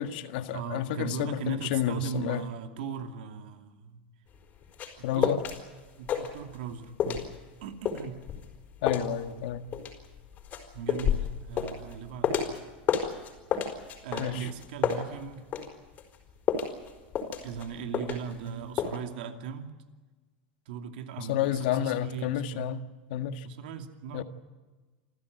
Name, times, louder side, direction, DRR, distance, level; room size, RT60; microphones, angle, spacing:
voice 1, 0.0-2.5 5.0-5.4 8.8-9.7 14.2-14.5 21.2-23.5 24.1-24.2, left 10 dB, 65° left, 9 dB, 1.7 m, -30 dB
voice 2, 0.5-4.1 5.1-5.4 6.0-7.2 7.6-8.2 10.7-12.6 14.0-15.4 17.4-19.7 20.7-22.7 23.4-24.2, right 7 dB, 75° right, 6 dB, 2.7 m, -38 dB
sound 1, 4.3-5.6 5.9-6.7 7.0-12.6 12.9-15.7 16.0-18.5 18.8-19.0, left 8 dB, 30° left, 4.7 m, -30 dB
27.5 x 14.5 x 9.4 m, 1.3 s
supercardioid pair, 145°, 5 cm